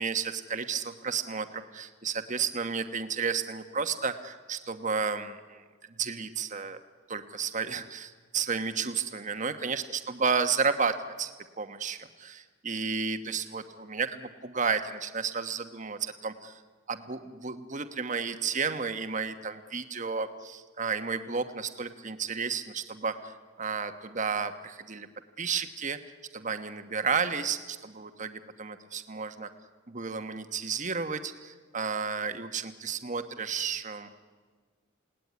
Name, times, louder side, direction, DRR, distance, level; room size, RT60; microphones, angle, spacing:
voice 1, 0.0-5.6 6.0-6.8 7.1-16.6 16.9-25.1 25.4-26.0 26.3-29.5 29.9-34.1, right 5 dB, 35° right, 8 dB, 1.3 m, -32 dB
28.5 x 18.5 x 9.6 m, 1.5 s
head